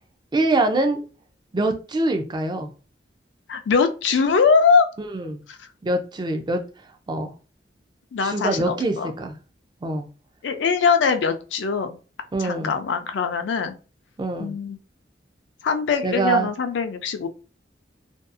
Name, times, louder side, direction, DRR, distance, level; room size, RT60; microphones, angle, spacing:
voice 1, 0.3-1.0 1.5-2.7 5.0-5.4 5.8-6.6 7.1-7.3 8.2-9.3 9.8-10.1 12.3-12.7 14.2-14.5 16.0-16.5, right 2 dB, 25° right, 0.4 m, -24 dB
voice 2, 3.5-4.9 5.5-5.6 8.1-9.1 10.4-12.0 12.4-13.7 14.4-14.8 15.6-17.3, left 5 dB, 80° left, 0.4 m, -22 dB
2.6 x 2.3 x 2.4 m
head